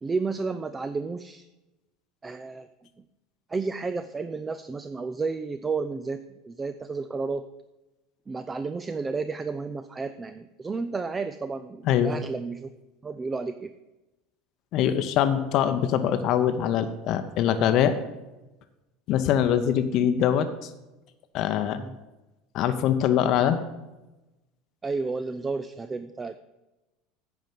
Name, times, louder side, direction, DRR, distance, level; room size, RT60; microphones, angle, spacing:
voice 1, 0.0-1.5 2.2-2.7 3.5-7.5 8.3-12.7 13.0-13.7 21.8-22.0 24.8-26.4, right 4 dB, 20° right, 11 dB, 0.4 m, -32 dB
voice 2, 14.7-18.0 19.1-20.7 21.3-21.8 22.5-23.6, left 9 dB, 55° left, 10 dB, 0.7 m, -23 dB
9.3 x 5.2 x 7.5 m, 1.0 s
hypercardioid pair, 75°, 0 cm